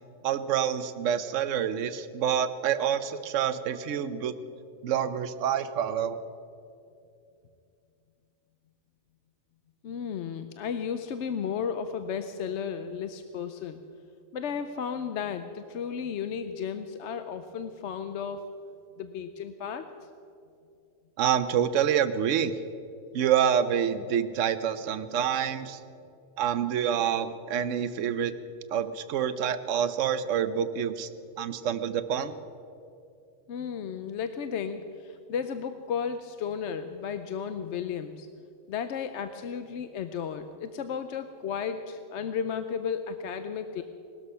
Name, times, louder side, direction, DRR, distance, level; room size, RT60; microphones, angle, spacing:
voice 1, 0.2-4.3 4.8-6.2 21.2-22.5 23.1-25.8 26.4-28.4 28.7-31.1 31.4-32.3, right 9 dB, 70° right, 12 dB, 1.1 m, -27 dB
voice 2, 9.8-13.8 14.3-18.5 19.0-19.9 33.5-38.3 38.7-43.8, left 7 dB, 65° left, 9 dB, 0.9 m, -34 dB
19.5 x 13.0 x 5.6 m, 2.5 s
omnidirectional pair, 1.4 m